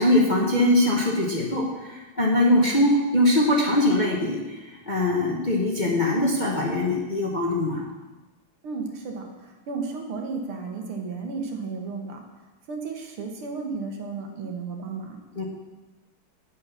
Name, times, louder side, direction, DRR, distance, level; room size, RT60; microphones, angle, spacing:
voice 1, 0.0-7.9 15.4-15.5, left 1 dB, 30° left, -3 dB, 0.9 m, -22 dB
voice 2, 8.6-12.2 12.7-15.2, right 4 dB, 85° right, 2 dB, 2.2 m, -33 dB
8.3 x 7.6 x 5.8 m, 1.2 s
omnidirectional pair, 2.4 m